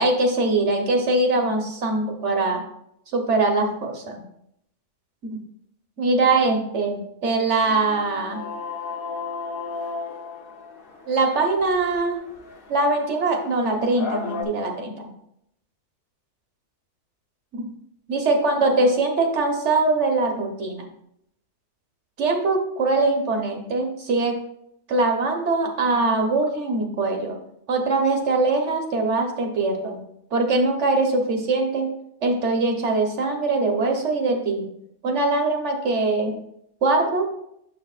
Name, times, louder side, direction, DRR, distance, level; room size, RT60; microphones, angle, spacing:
voice 1, 0.0-2.7 3.1-4.2 5.3-5.4 6.0-8.4 11.1-12.2 12.7-14.9 17.5-17.6 18.1-20.9 22.2-24.4 24.9-27.4 27.7-30.0 30.3-31.9 32.2-34.7 35.0-36.3 36.8-37.3, right 3 dB, 70° right, 3 dB, 1.5 m, -22 dB
sound 1, 7.7-14.4, left 4 dB, 50° left, 1.0 m, -35 dB
8.4 x 6.7 x 2.5 m, 0.75 s
omnidirectional pair, 1.2 m